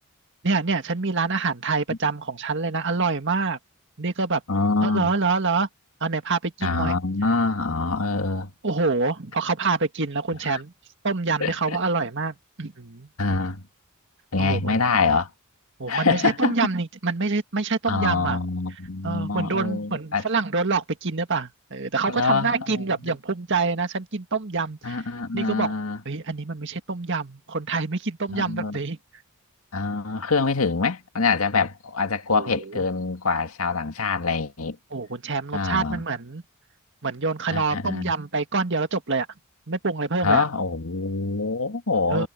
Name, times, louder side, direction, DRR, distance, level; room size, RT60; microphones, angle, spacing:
voice 1, 0.4-3.6 4.0-4.4 4.8-5.7 6.0-7.0 8.6-10.7 11.0-13.1 14.4-14.8 15.8-18.4 19.0-25.0 25.3-25.7 26.1-29.0 32.3-32.8 34.9-36.4 37.0-39.3 39.7-40.4 42.1-42.3, right 4 dB, 55° right, 1.9 m, -26 dB
voice 2, 4.5-5.1 6.6-8.5 10.4-10.6 11.4-11.8 13.2-13.6 14.3-15.3 15.9-16.6 17.9-20.3 22.1-23.1 24.8-26.0 28.3-28.8 29.7-34.8 35.5-36.0 37.5-38.1 40.2-42.3, left 4 dB, 80° left, 1.9 m, -25 dB
head